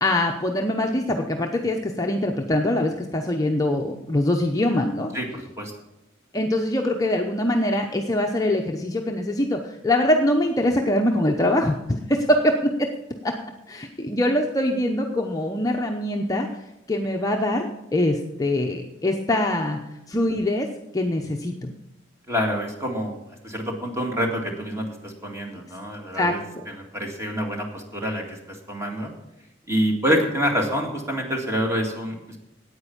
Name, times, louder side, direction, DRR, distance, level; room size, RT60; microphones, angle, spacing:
voice 1, 0.0-5.1 6.3-11.8 12.1-12.9 13.2-13.3 13.7-16.5 16.9-19.8 20.1-20.7 20.9-21.7 26.1-26.6, left 1 dB, 20° left, 2 dB, 0.7 m, -23 dB
voice 2, 5.1-5.7 22.3-26.4 26.7-29.1 29.7-32.4, equal, 15° right, 1 dB, 2.0 m, -27 dB
9.5 x 8.9 x 7.1 m, 0.89 s
head